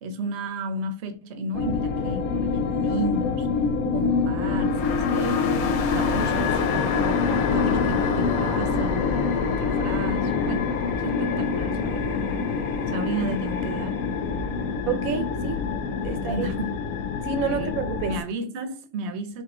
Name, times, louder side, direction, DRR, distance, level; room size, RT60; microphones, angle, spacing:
voice 1, 0.0-3.5 3.9-7.2 7.5-12.2 12.9-14.1 16.1-16.7 17.5-17.7 18.0-19.4, right 2 dB, 55° right, 0.9 m, -33 dB
sound 1, 1.5-18.2, left 5 dB, 90° left, 1.1 m, -25 dB
sound 2, 5.8-14.8, left 2 dB, 40° left, 0.9 m, -43 dB
voice 2, 14.9-15.6 16.0-16.5 17.2-18.1, right 6 dB, 80° right, 1.1 m, -28 dB
4.1 x 2.9 x 3.4 m
omnidirectional pair, 1.5 m